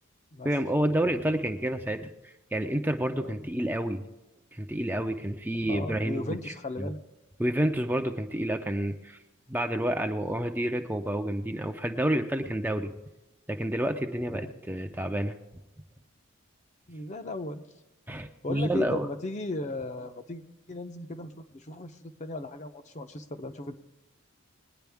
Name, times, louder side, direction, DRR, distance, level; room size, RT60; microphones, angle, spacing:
voice 1, 0.4-4.0 4.5-6.4 6.8-6.9 7.4-9.2 9.5-12.9 13.5-15.3 18.1-19.1, right 1 dB, 10° right, 6 dB, 0.6 m, -29 dB
voice 2, 3.1-3.5 5.7-7.0 14.3-14.6 16.9-17.6 18.4-20.4 20.7-23.7, left 2 dB, 35° left, 8 dB, 0.7 m, -36 dB
21.0 x 9.8 x 3.5 m, 1.0 s
head